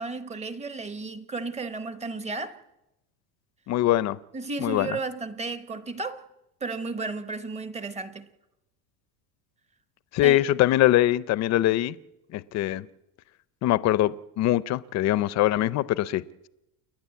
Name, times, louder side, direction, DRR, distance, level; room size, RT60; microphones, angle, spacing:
voice 1, 0.0-2.6 4.3-6.3 6.6-8.3 10.2-10.4, right 3 dB, 15° right, 1.0 m, -33 dB
voice 2, 3.7-4.2 4.6-5.0 10.1-11.9 12.3-12.9 13.6-16.2, left 14 dB, 40° left, 0.6 m, -23 dB
29.5 x 11.0 x 8.4 m
cardioid pair, 150°, 44 cm